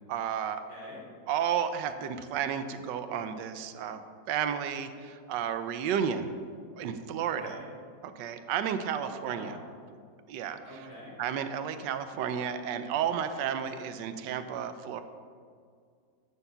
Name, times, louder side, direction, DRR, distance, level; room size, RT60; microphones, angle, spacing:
voice 1, 0.1-0.6 1.3-4.0 4.3-6.3 6.8-7.6 8.0-9.6 10.3-10.6 11.2-15.0, right 8 dB, 90° right, 10 dB, 1.3 m, -32 dB
voice 2, 0.7-1.0 7.4-7.7 8.9-9.6 10.6-11.1 13.3-13.5, equal, 85° left, -6 dB, 3.5 m, -45 dB
9.8 x 4.6 x 6.9 m, 2.2 s
omnidirectional pair, 1.9 m